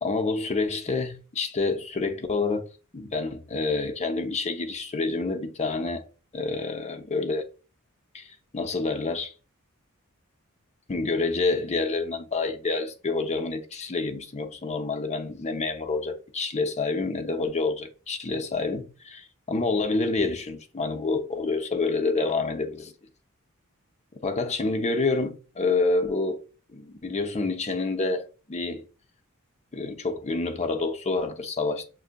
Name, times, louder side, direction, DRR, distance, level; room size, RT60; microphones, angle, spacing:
voice 1, 0.0-2.6 2.9-6.0 6.3-7.4 8.1-9.3 10.9-22.9 24.2-26.4 26.7-28.8 29.7-31.8, left 3 dB, 30° left, 0.6 m, -28 dB
6.2 x 2.6 x 2.2 m
head